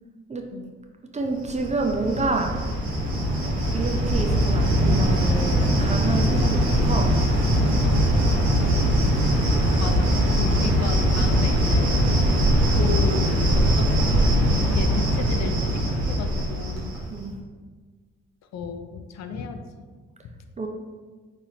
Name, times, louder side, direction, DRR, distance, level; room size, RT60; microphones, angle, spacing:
voice 1, 1.1-2.6 3.7-7.2 8.5-8.8 17.1-17.4 20.6-20.7, right 3 dB, 20° right, 3 dB, 0.4 m, -28 dB
Cricket, 1.5-17.2, equal, 85° right, 0.7 m, -21 dB
voice 2, 9.8-11.9 12.8-17.0 18.5-19.8 20.2-20.3, left 5 dB, 55° left, 6 dB, 0.4 m, -34 dB
4.1 x 2.5 x 2.7 m, 1.4 s
hypercardioid pair, 40°, 33 cm